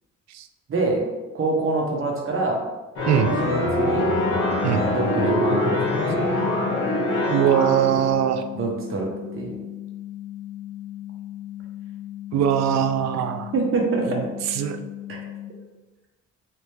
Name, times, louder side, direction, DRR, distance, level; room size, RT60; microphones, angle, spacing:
voice 1, 0.7-1.0 1.3-2.6 3.4-4.1 4.9-6.4 8.5-9.5 13.5-14.2 15.1-15.2, right 3 dB, 45° right, 0 dB, 1.0 m, -25 dB
sound 1, 3.0-8.1, left 2 dB, 90° left, 1.2 m, -23 dB
voice 2, 3.1-3.4 4.6-4.9 7.3-8.4 12.3-13.5 14.1-14.2 14.5-14.8, right 9 dB, 65° right, 8 dB, 0.4 m, -21 dB
sound 2, 5.5-15.5, left 13 dB, 20° left, 0.4 m, -37 dB
3.3 x 2.9 x 3.2 m, 1.1 s
cardioid pair, 90°, 30 cm